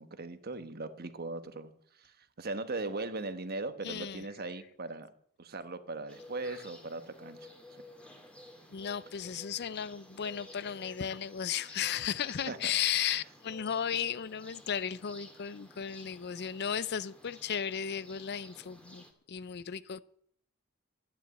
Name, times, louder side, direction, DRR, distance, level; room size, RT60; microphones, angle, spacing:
voice 1, 0.0-1.7 2.0-5.1 5.4-7.5 12.5-12.7, right 2 dB, 45° right, 1.2 m, -39 dB
voice 2, 3.8-4.2 6.5-6.6 8.7-20.0, left 8 dB, 50° left, 0.5 m, -35 dB
sound 1, 6.1-19.1, left 1 dB, 5° left, 2.2 m, -54 dB
12.5 x 10.5 x 8.3 m
head